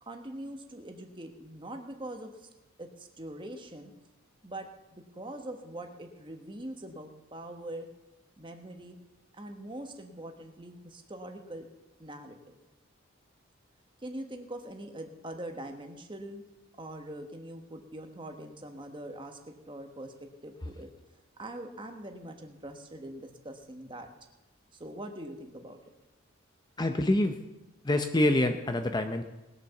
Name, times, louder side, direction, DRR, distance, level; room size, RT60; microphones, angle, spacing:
voice 1, 0.0-2.5 2.8-3.9 4.4-7.9 8.4-9.0 9.3-11.7 12.0-12.6 14.0-16.4 16.8-19.4 19.7-20.9 21.4-24.1 24.8-25.8, right 1 dB, 25° right, 5 dB, 1.3 m, -43 dB
voice 2, 26.8-27.4 27.8-29.2, left 1 dB, 20° left, 7 dB, 0.6 m, -26 dB
19.5 x 6.8 x 7.0 m, 1.0 s
head